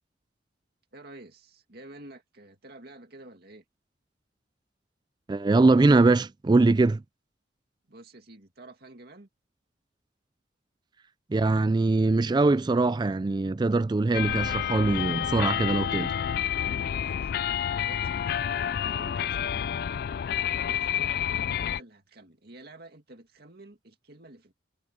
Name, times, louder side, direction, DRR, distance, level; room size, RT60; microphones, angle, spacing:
voice 1, 0.9-3.6 7.9-9.3 16.9-19.6 20.2-24.5, right 2 dB, 55° right, 2.3 m, -50 dB
voice 2, 5.3-7.0 11.3-16.1, right 3 dB, 25° right, 0.3 m, -22 dB
sound 1, 14.1-21.8, left 9 dB, 55° left, 0.3 m, -29 dB
head